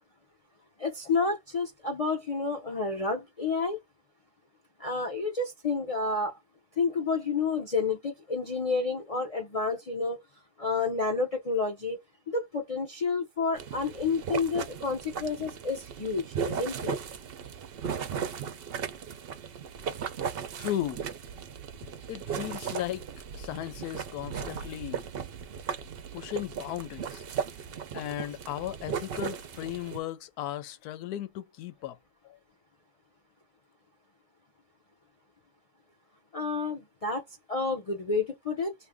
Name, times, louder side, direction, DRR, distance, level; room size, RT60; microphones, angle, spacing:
voice 1, 0.8-3.8 4.8-6.4 6.8-10.2 10.6-12.0 12.3-17.0 36.3-38.7, left 4 dB, 55° left, 0.4 m, -30 dB
sound 1, 13.6-30.0, right 7 dB, 60° right, 0.6 m, -37 dB
voice 2, 20.6-21.0 22.1-23.1 23.3-25.1 26.1-27.3 27.9-32.0 32.2-32.4, left 12 dB, 90° left, 1.2 m, -36 dB
2.7 x 2.5 x 3.5 m
omnidirectional pair, 1.6 m